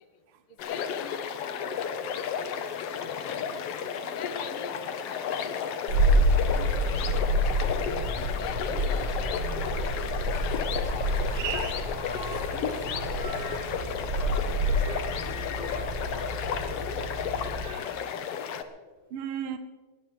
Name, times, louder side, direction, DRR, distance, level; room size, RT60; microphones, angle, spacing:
sound 1, 0.6-18.6, left 7 dB, 65° left, 1.7 m, -33 dB
voice 1, 0.7-2.5 3.0-3.4 4.1-4.7 5.0-5.5 5.8-5.9 6.4-6.7 7.3-7.4 7.8-7.9 8.2-9.5 10.1-10.6 10.9-11.0 11.3-11.6 12.5-12.8, left 11 dB, 90° left, 1.1 m, -44 dB
sound 2, 1.6-2.0 2.7-2.8 4.1-4.8 5.2-5.4 5.8-6.0 6.6-6.9 7.6-8.3 9.3-9.8 10.7-11.3 11.9-14.4 14.7-17.0, equal, 35° left, 4.8 m, -46 dB
sound 3, 5.9-17.6, equal, 60° right, 6.5 m, -28 dB
voice 2, 11.3-11.8 14.7-15.1 17.6-17.9 19.1-19.6, right 10 dB, 80° right, 1.2 m, -36 dB
20.0 x 19.5 x 3.2 m
omnidirectional pair, 3.6 m